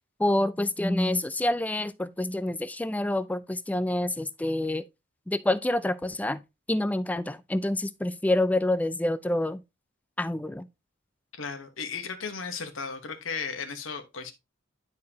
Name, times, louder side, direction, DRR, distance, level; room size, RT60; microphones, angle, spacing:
voice 1, 0.2-4.8 5.3-6.4 6.7-9.6 10.2-10.7, left 1 dB, 10° left, 0.3 m, -27 dB
voice 2, 11.4-14.3, left 5 dB, 70° left, 1.1 m, -35 dB
10.5 x 4.7 x 2.8 m
head